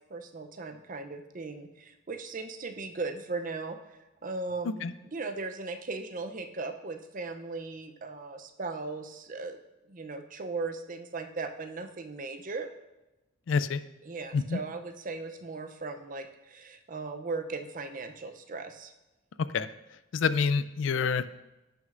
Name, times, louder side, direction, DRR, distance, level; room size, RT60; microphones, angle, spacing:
voice 1, 0.1-3.8 4.2-9.6 9.9-12.7 14.0-18.9, right 3 dB, 40° right, 7 dB, 0.6 m, -37 dB
voice 2, 13.5-13.8 14.3-14.6 19.5-19.7 20.1-21.4, left 5 dB, 65° left, 14 dB, 0.4 m, -27 dB
11.0 x 6.3 x 2.5 m, 0.98 s
head